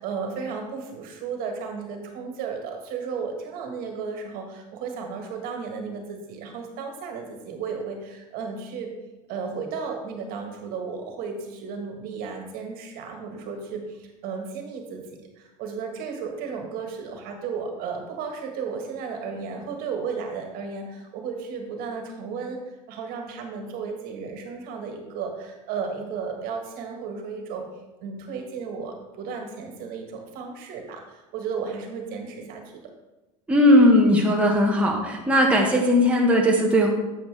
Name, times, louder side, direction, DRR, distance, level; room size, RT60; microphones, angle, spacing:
voice 1, 0.0-8.9 9.3-27.7 28.0-32.9, right 5 dB, 55° right, 3 dB, 1.7 m, -34 dB
voice 2, 33.5-36.9, left 1 dB, 5° right, -2 dB, 1.4 m, -18 dB
8.5 x 7.7 x 3.4 m, 1.1 s
supercardioid pair, 115°, 18 cm